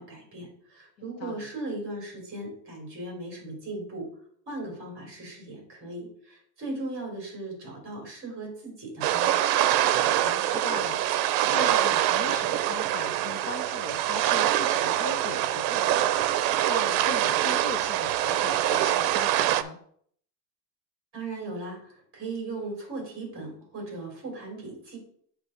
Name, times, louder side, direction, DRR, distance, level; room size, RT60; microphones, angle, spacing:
voice 1, 0.0-4.1 4.5-9.4 21.1-25.0, right 2 dB, 25° right, 0 dB, 3.2 m, -37 dB
sound 1, 9.0-19.6, right 12 dB, 80° right, 0.7 m, -24 dB
voice 2, 10.0-11.0 11.5-16.2 16.7-19.8, left 5 dB, 35° left, 4 dB, 0.5 m, -39 dB
7.5 x 3.3 x 6.3 m, 0.62 s
cardioid pair, 170°, 49 cm